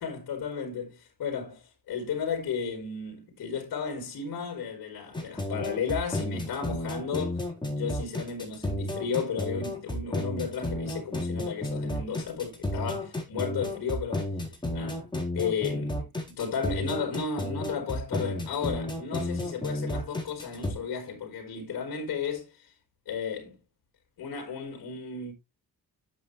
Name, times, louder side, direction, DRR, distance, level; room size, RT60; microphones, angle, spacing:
voice 1, 0.0-14.3 14.7-15.1 15.3-16.0 16.3-22.7 23.1-23.5 24.2-25.3, left 6 dB, 70° left, 4.1 m, -34 dB
sound 1, 5.1-20.7, left 1 dB, 10° left, 3.9 m, -32 dB
10.5 x 7.9 x 3.2 m
cardioid pair, 100°, 36 cm